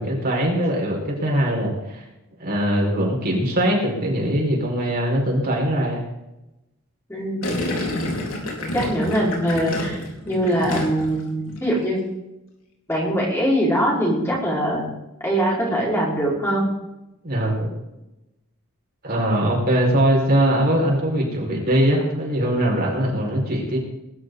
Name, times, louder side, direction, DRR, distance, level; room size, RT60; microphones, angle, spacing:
voice 1, 0.0-2.0 2.4-6.0 17.2-17.7 19.0-23.8, right 1 dB, 45° right, -2 dB, 5.1 m, -21 dB
voice 2, 7.1-7.7 8.7-12.0 12.9-14.9 15.2-16.7, right 1 dB, 10° left, -5 dB, 5.0 m, -22 dB
Gurgling, 7.4-11.2 11.5-11.9, left 1 dB, 65° left, 4.3 m, -28 dB
21.5 x 12.0 x 4.1 m, 0.92 s
head